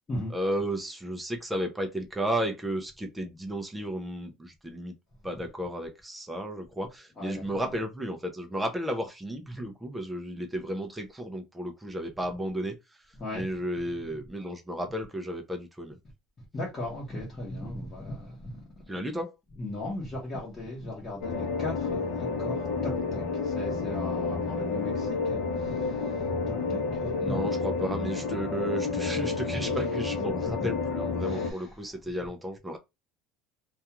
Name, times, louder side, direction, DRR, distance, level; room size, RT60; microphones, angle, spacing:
voice 1, 0.3-4.9 5.2-12.8 13.3-16.0 18.9-19.3 27.2-32.8, right 1 dB, 5° right, 0.4 m, -33 dB
voice 2, 7.2-7.6 13.2-13.5 16.5-18.6 19.6-27.5 29.0-29.8 30.4-30.7 31.2-31.8, left 1 dB, 20° left, 0.9 m, -38 dB
sound 1, 21.2-31.5, left 4 dB, 60° left, 0.6 m, -30 dB
2.3 x 2.2 x 2.9 m
cardioid pair, 160°, 0 cm